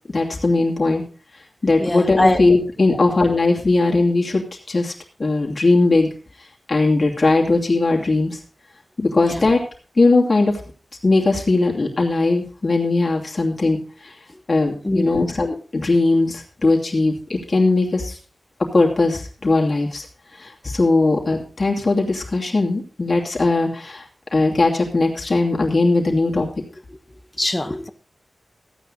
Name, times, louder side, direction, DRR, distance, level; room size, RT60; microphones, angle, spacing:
voice 1, 0.1-1.0 1.6-4.9 5.2-6.1 6.7-8.4 9.0-9.6 10.0-10.5 11.0-13.8 14.0-14.1 14.5-18.1 18.7-20.0 20.4-24.0 24.3-26.5, left 3 dB, 40° left, 2.8 m, -19 dB
voice 2, 1.8-2.4 2.9-3.0 9.1-9.4 14.8-15.3 27.4-27.9, left 1 dB, 15° left, 1.1 m, -22 dB
14.5 x 9.0 x 4.2 m
wide cardioid pair, 110°, 0 cm